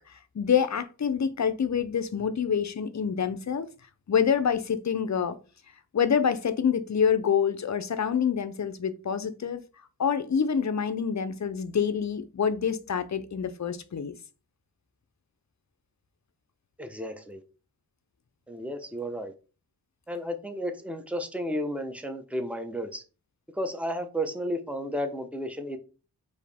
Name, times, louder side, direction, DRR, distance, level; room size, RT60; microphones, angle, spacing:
voice 1, 0.3-3.7 4.1-5.4 5.9-9.6 10.0-14.1, left 7 dB, 45° left, 0.6 m, -26 dB
voice 2, 16.8-17.4 18.5-19.3 20.1-23.0 23.5-25.8, equal, 5° right, 0.8 m, -33 dB
4.7 x 2.7 x 3.5 m
cardioid pair, 45°, 39 cm